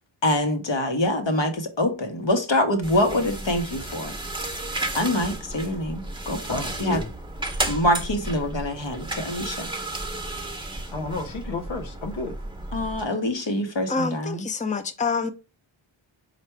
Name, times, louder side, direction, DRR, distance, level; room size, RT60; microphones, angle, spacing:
voice 1, 0.2-4.1 4.9-7.0 7.7-9.7 12.7-14.5, left 1 dB, 65° left, 1.0 m, -25 dB
sound 1, 2.8-13.0, right 2 dB, 10° right, 0.8 m, -33 dB
voice 2, 6.5-7.1 10.9-12.4, left 3 dB, 85° left, 0.8 m, -31 dB
voice 3, 13.9-15.3, left 4 dB, 15° left, 0.5 m, -27 dB
4.5 x 2.5 x 4.4 m
wide cardioid pair, 45°, 48 cm